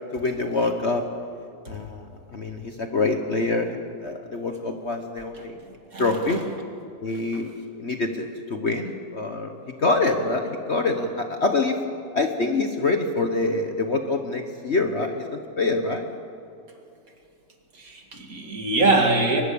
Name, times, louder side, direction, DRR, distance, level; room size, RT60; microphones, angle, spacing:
voice 1, 0.1-1.0 1.7-5.6 6.0-6.4 7.0-7.5 7.8-11.8 12.1-16.1, left 3 dB, 40° left, 5 dB, 1.2 m, -25 dB
voice 2, 5.9-6.4 17.7-19.4, right 2 dB, 50° right, 2 dB, 2.6 m, -23 dB
22.5 x 20.5 x 7.0 m, 2.4 s
omnidirectional pair, 2.0 m